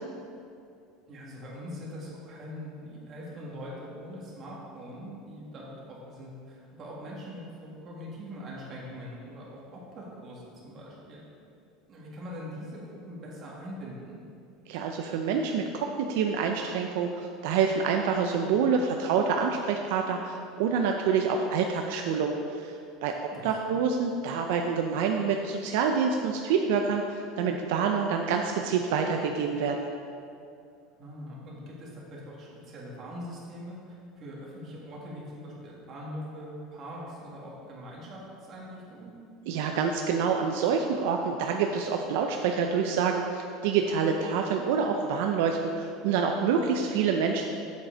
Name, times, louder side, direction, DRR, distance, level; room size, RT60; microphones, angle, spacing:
voice 1, 1.1-11.2 11.9-14.2 23.3-23.8 31.0-39.2, equal, 30° right, -4 dB, 1.9 m, -42 dB
voice 2, 14.7-22.7 23.0-29.9 39.5-47.5, right 6 dB, 70° right, 3 dB, 0.5 m, -27 dB
7.6 x 7.3 x 3.9 m, 2.5 s
cardioid pair, 165°, 0 cm